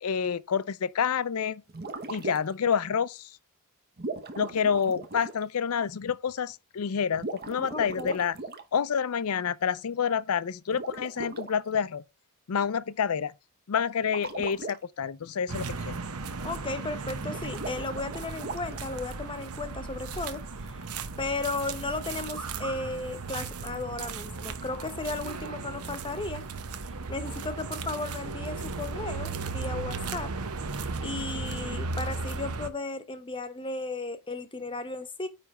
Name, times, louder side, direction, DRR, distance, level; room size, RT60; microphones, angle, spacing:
voice 1, 0.0-1.6 2.1-3.3 4.4-8.4 8.7-12.0 12.5-13.3 13.7-15.9, left 7 dB, 70° left, 0.5 m, -28 dB
sound 1, 1.7-2.7 4.0-5.4 7.1-8.7 10.7-11.5 14.0-14.8 17.2-18.9, right 3 dB, 45° right, 1.0 m, -38 dB
voice 2, 7.7-8.2 16.4-20.8 21.2-26.4 27.1-30.3 31.0-35.3, left 3 dB, 25° left, 0.9 m, -35 dB
sound 2, 15.5-32.7, right 4 dB, 80° right, 0.9 m, -36 dB
9.4 x 3.3 x 4.9 m
head